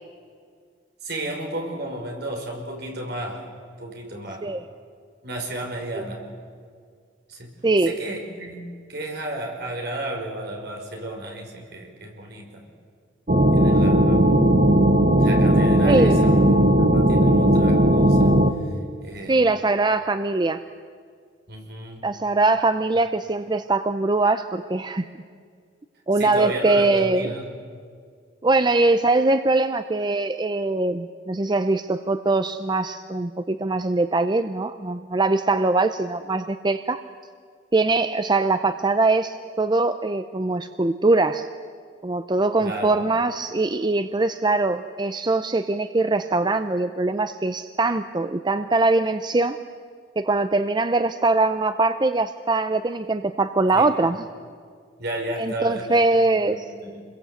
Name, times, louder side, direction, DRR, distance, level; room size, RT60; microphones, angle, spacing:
voice 1, 1.0-3.5 3.8-4.5 5.2-6.2 7.3-7.5 7.9-12.6 13.5-14.4 15.2-16.5 16.8-18.4 19.0-19.4 21.5-22.0 26.2-27.5 42.6-43.0 53.7-53.9 55.0-57.1, right 1 dB, 60° right, 1 dB, 5.5 m, -33 dB
voice 2, 7.6-7.9 15.9-16.2 19.3-20.6 22.0-25.1 26.1-27.3 28.4-37.0 37.7-41.5 42.0-49.6 50.2-54.2 55.4-56.6, right 3 dB, 25° right, 10 dB, 0.6 m, -22 dB
sound 1, 13.3-18.5, right 1 dB, 40° right, 1.2 m, -17 dB
28.0 x 22.0 x 8.2 m, 2.1 s
head